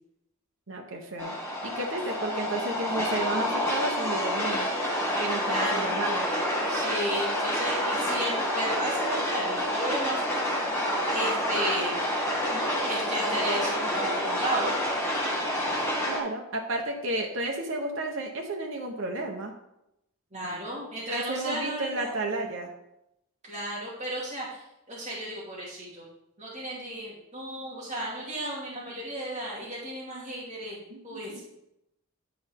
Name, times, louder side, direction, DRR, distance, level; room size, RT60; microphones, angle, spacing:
voice 1, 0.7-1.4 1.6-4.7 5.2-6.3 16.0-19.5 21.1-22.7 30.9-31.5, right 2 dB, 65° right, 1 dB, 1.0 m, -32 dB
sound 1, 1.2-16.2, equal, 10° left, 1.9 m, -28 dB
voice 2, 5.4-5.9 6.7-10.2 10.5-10.6 11.1-12.0 12.5-14.7 20.3-22.1 23.4-26.0 26.4-31.5, right 1 dB, 35° right, -7 dB, 2.5 m, -34 dB
11.5 x 5.5 x 3.6 m, 0.84 s
head